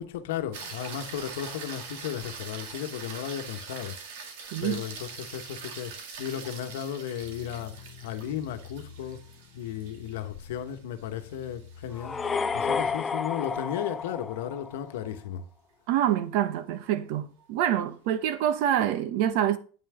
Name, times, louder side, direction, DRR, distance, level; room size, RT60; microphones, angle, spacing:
voice 1, 0.0-4.0 4.6-9.3 9.5-12.2 12.5-15.5, left 10 dB, 90° left, 1.2 m, -35 dB
sound 1, 0.5-12.9 17.4-17.5, right 5 dB, 75° right, 2.1 m, -43 dB
voice 2, 4.5-4.8 15.9-19.6, right 11 dB, 55° right, 1.0 m, -26 dB
sound 2, 7.2-13.0, left 6 dB, 50° left, 0.9 m, -49 dB
sound 3, 11.9-15.0, left 5 dB, 15° left, 0.4 m, -31 dB
8.7 x 5.8 x 4.9 m
supercardioid pair, 165°, 0 cm